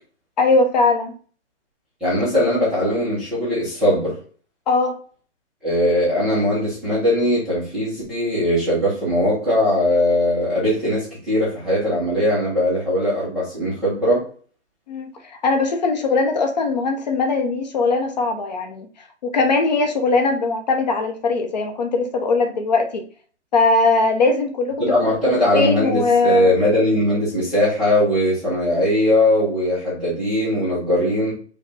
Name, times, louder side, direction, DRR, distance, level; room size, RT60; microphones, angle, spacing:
voice 1, 0.4-1.1 4.7-5.0 14.9-18.9 19.2-23.0 23.5-25.1 25.5-26.5, left 3 dB, 40° left, 5 dB, 0.7 m, -20 dB
voice 2, 2.0-4.1 5.6-14.2 24.8-31.3, left 1 dB, ahead, -12 dB, 0.6 m, -20 dB
5.1 x 2.2 x 4.0 m, 0.42 s
hypercardioid pair, 160°, 35 cm